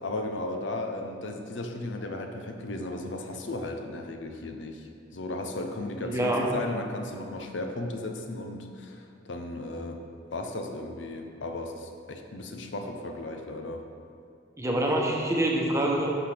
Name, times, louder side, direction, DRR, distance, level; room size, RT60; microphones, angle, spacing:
voice 1, 0.0-10.0 10.3-13.8, left 2 dB, 80° left, 4 dB, 0.7 m, -35 dB
voice 2, 6.0-6.4 14.6-16.2, right 1 dB, 15° right, -1 dB, 1.0 m, -26 dB
10.5 x 5.8 x 3.4 m, 2.3 s
head